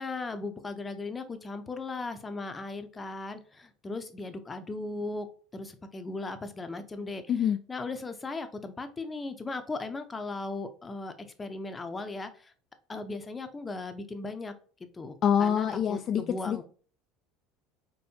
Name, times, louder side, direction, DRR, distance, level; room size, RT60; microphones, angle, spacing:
voice 1, 0.0-5.3 5.5-12.5 12.9-14.5 14.9-16.6, left 3 dB, 20° left, 8 dB, 0.7 m, -37 dB
voice 2, 15.2-16.6, left 8 dB, 45° left, 6 dB, 0.3 m, -26 dB
4.4 x 3.0 x 2.8 m, 0.41 s
hypercardioid pair, 70°, 0 cm